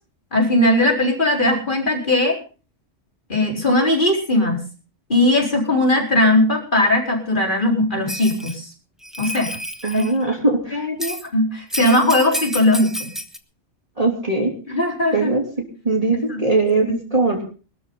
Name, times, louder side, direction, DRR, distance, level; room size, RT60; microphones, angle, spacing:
voice 1, 0.3-2.4 3.3-4.6 5.1-8.7 9.2-9.6 9.9-10.1 10.7-13.1 14.7-15.3 16.3-16.4, left 1 dB, 40° left, 1 dB, 4.6 m, -19 dB
Bell, 8.1-8.6 9.0-10.1 11.0-11.3 11.7-13.4, equal, ahead, 1.3 m, -30 dB
voice 2, 9.8-10.8 14.0-14.5 15.1-15.4 15.8-17.4, right 3 dB, 30° right, 0 dB, 3.3 m, -20 dB
22.0 x 13.0 x 3.9 m, 0.36 s
omnidirectional pair, 1.3 m